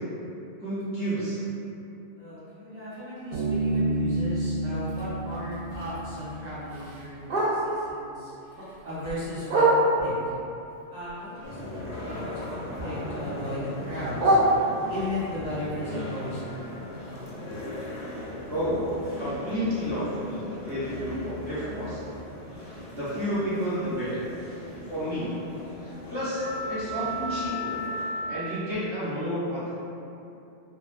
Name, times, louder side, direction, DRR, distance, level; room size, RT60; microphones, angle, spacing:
voice 1, 0.6-1.4 18.5-18.9 19.2-22.1 22.6-24.3 24.9-25.5 25.8-27.9 28.3-29.7, equal, 15° left, -14 dB, 0.4 m, -31 dB
voice 2, 2.2-7.2 7.5-9.7 10.0-10.4 10.9-14.6 14.9-16.6, left 1 dB, 35° right, -13 dB, 0.9 m, -36 dB
Bass guitar, 3.3-6.8, right 2 dB, 80° right, 0.9 m, -30 dB
Bark, 4.7-7.9 8.3-10.2 10.7-12.5 12.8-15.1 15.6-19.5 19.8-19.9 20.2-20.6 21.0-21.1 21.5-21.6 22.1-22.2, right 1 dB, 60° right, 0.6 m, -29 dB
sound 1, 11.4-28.6, left 1 dB, 85° left, 1.0 m, -37 dB
2.3 x 2.2 x 2.5 m, 2.7 s
omnidirectional pair, 1.3 m